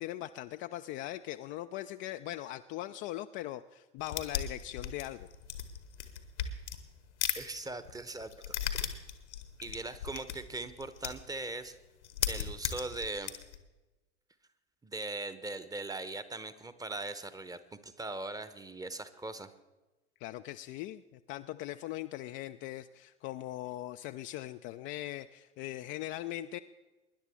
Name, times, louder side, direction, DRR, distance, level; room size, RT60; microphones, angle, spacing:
voice 1, 0.0-5.3 20.2-26.6, left 14 dB, 35° left, 8 dB, 0.4 m, -40 dB
sound 1, 4.0-7.4 7.7-11.3 11.7-11.8 12.0-13.6, left 9 dB, 75° left, 1.3 m, -36 dB
voice 2, 7.3-8.8 9.6-11.8 12.3-13.3 14.8-19.5, right 2 dB, 10° right, 13 dB, 0.9 m, -40 dB
24.0 x 11.0 x 3.6 m, 1.1 s
figure-of-eight pair, 75°, 35 cm